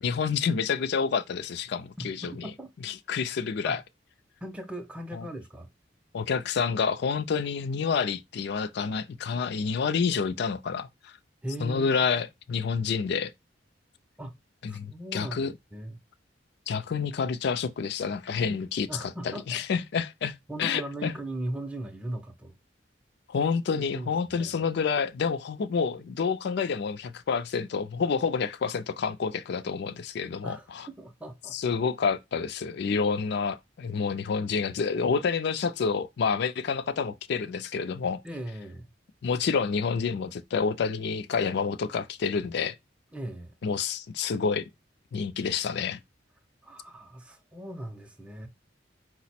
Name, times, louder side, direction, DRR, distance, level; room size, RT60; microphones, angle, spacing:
voice 1, 0.0-2.3 2.8-3.8 5.1-5.2 6.1-11.1 11.6-13.3 14.6-15.5 16.7-20.3 20.6-21.1 23.3-30.8 31.5-38.2 39.2-42.7 43.6-44.7 45.1-46.0, left 5 dB, 60° left, 0.4 m, -28 dB
voice 2, 2.0-2.7 3.6-3.8 4.4-5.7 11.4-12.2 12.6-12.7 14.2-14.3 14.7-16.0 18.9-19.6 20.5-22.5 23.7-24.6 30.4-30.7 31.0-31.6 32.7-32.8 38.2-38.9 43.1-43.5 46.6-48.5, right 1 dB, 5° right, 0.5 m, -39 dB
4.9 x 2.0 x 4.2 m
head